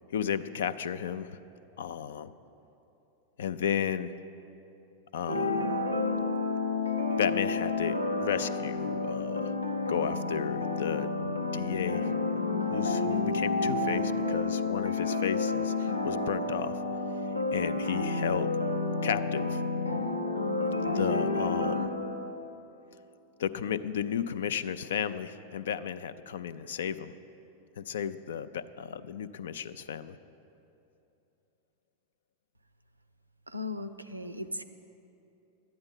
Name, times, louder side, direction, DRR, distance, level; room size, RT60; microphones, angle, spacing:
voice 1, 0.1-1.4 1.8-2.3 3.4-4.1 5.1-5.8 7.2-9.5 9.9-12.1 12.7-16.8 17.5-18.5 19.0-19.6 20.9-21.9 23.4-27.1 27.8-30.2, left 8 dB, 60° left, 14 dB, 0.4 m, -33 dB
sound 1, 5.3-22.5, left 3 dB, 85° left, 0.8 m, -30 dB
voice 2, 33.5-34.6, left 2 dB, 85° right, 12 dB, 0.5 m, -37 dB
12.5 x 9.6 x 5.5 m, 2.9 s
figure-of-eight pair, 90°, 0 cm